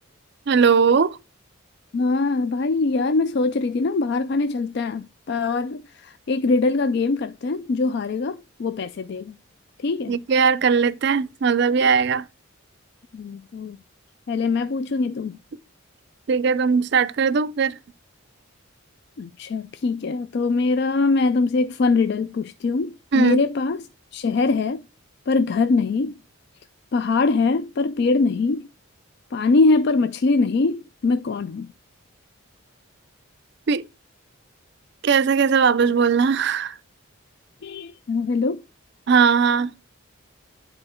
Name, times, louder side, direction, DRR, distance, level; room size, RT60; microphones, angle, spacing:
voice 1, 0.5-1.2 10.1-12.3 16.3-17.8 23.1-23.4 33.7-33.8 35.0-36.8 39.1-39.7, right 6 dB, 55° right, 0.4 m, -19 dB
voice 2, 1.9-9.3 9.8-10.2 13.1-13.8 14.3-15.4 19.2-23.8 24.1-24.8 25.3-26.1 26.9-28.7 29.3-31.7 37.6-38.6, left 3 dB, 55° left, 0.3 m, -22 dB
10.0 x 3.8 x 4.3 m
head